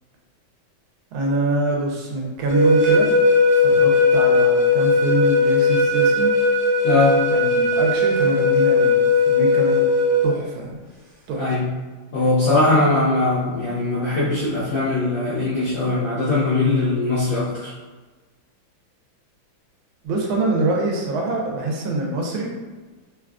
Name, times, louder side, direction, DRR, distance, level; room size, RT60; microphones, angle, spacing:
voice 1, 1.1-3.2 3.5-6.3 7.3-9.0 9.3-9.8 10.2-10.8 11.3-11.6 20.0-22.5, right 2 dB, 80° right, -1 dB, 1.4 m, -24 dB
sound 1, 2.5-10.3, left 3 dB, 55° right, 0.8 m, -17 dB
voice 2, 6.8-7.2 11.4-11.7 12.1-17.7, left 2 dB, 70° left, -9 dB, 0.8 m, -20 dB
3.7 x 2.3 x 2.3 m, 1.3 s
omnidirectional pair, 2.2 m